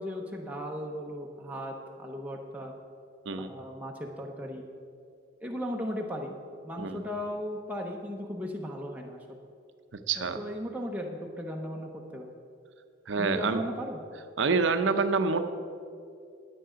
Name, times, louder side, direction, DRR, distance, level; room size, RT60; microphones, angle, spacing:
voice 1, 0.0-2.7 3.3-4.6 5.4-6.3 6.6-9.2 10.2-12.3 13.2-14.0, equal, 10° right, -1 dB, 0.7 m, -36 dB
voice 2, 9.9-10.4 13.1-13.6 14.4-15.4, right 4 dB, 75° right, 9 dB, 0.6 m, -27 dB
10.0 x 9.5 x 5.1 m, 2.4 s
head